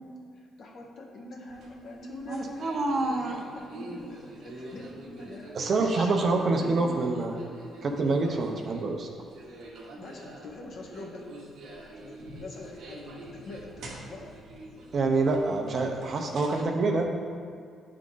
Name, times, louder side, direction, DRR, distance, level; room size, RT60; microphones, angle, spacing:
voice 1, 0.0-2.8 3.1-6.1 6.5-6.8 9.9-11.2 12.0-14.4, left 2 dB, 60° left, 0 dB, 1.1 m, -44 dB
sound 1, 1.5-16.6, right 1 dB, 75° right, 1.1 m, -45 dB
voice 2, 2.3-3.4 5.5-7.4 7.8-9.1 14.9-17.1, right 3 dB, 50° right, 3 dB, 0.7 m, -26 dB
8.9 x 3.7 x 3.8 m, 2.2 s
cardioid pair, 90°, 0 cm